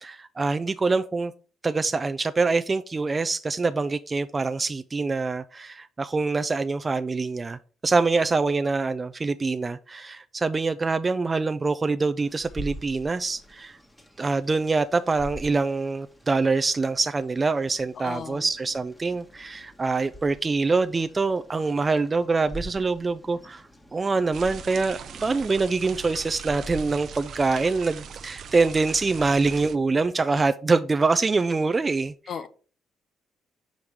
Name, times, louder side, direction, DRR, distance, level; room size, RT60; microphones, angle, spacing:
voice 1, 0.0-1.3 1.6-13.8 14.2-23.6 23.9-32.3, right 3 dB, 30° right, 0.3 m, -25 dB
sound 1, 12.2-29.2, equal, 5° left, 1.1 m, -45 dB
voice 2, 18.0-18.4 32.3-32.5, left 7 dB, 60° left, 0.7 m, -35 dB
sound 2, 24.3-29.8, right 7 dB, 65° right, 0.6 m, -40 dB
5.5 x 5.1 x 4.6 m
cardioid pair, 90°, 0 cm